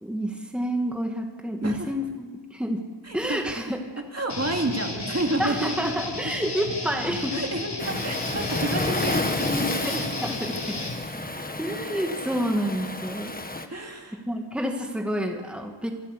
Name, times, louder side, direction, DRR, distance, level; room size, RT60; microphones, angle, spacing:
voice 1, 0.0-2.8 3.1-3.8 5.4-7.4 8.9-9.1 9.5-10.8 11.6-13.3 14.3-15.9, equal, ahead, 2 dB, 2.2 m, -29 dB
voice 2, 3.0-3.5 4.1-5.9 7.3-9.9 13.7-14.2, right 1 dB, 35° right, 2 dB, 2.4 m, -30 dB
Guitar, 4.3-11.0, left 2 dB, 65° left, 5.0 m, -33 dB
Waves surf, 7.8-13.7, left 2 dB, 20° left, 1.5 m, -30 dB
27.5 x 13.0 x 8.4 m, 1.5 s
wide cardioid pair, 100°, 43 cm